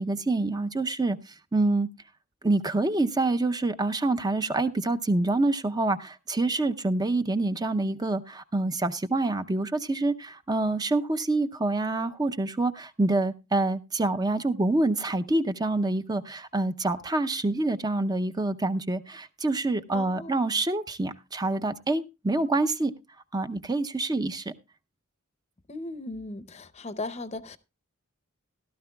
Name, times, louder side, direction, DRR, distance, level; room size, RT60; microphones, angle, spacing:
voice 1, 0.0-1.9 2.4-22.9 23.3-24.5, right 2 dB, 20° right, 0.5 m, -26 dB
voice 2, 19.9-20.4 25.7-27.6, left 2 dB, 30° left, 0.7 m, -37 dB
16.5 x 12.5 x 2.2 m
head